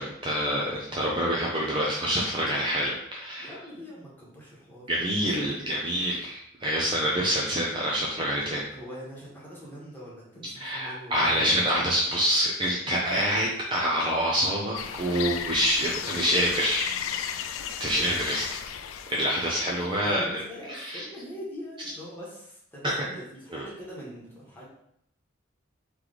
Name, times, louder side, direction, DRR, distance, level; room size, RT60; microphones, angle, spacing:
voice 1, 0.0-3.5 4.9-8.7 10.5-16.9 17.8-18.4 19.1-20.4 20.7-21.0 22.8-22.9 23.5-23.6, equal, 25° right, -4 dB, 0.5 m, -26 dB
voice 2, 3.4-4.9 5.3-5.7 8.7-11.7 19.5-24.7, equal, 10° left, -6 dB, 1.2 m, -43 dB
sound 1, 14.7-20.0, left 8 dB, 85° left, 0.3 m, -34 dB
3.3 x 3.1 x 3.8 m, 0.74 s
head